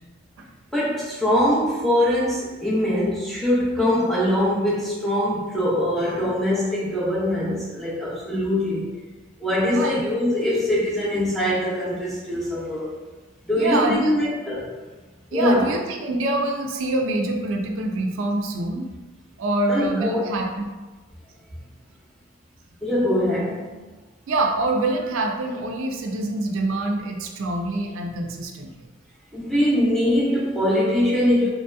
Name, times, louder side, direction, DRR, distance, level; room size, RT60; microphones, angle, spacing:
voice 1, 0.7-8.9 9.4-12.9 13.5-14.7 15.3-15.7 19.7-20.3 22.8-23.7 29.3-31.5, left 1 dB, ahead, -7 dB, 0.6 m, -22 dB
voice 2, 9.7-10.0 13.6-14.3 15.3-18.9 19.4-20.7 24.3-28.9, right 2 dB, 80° right, 3 dB, 0.4 m, -25 dB
3.1 x 2.7 x 2.2 m, 1.2 s
head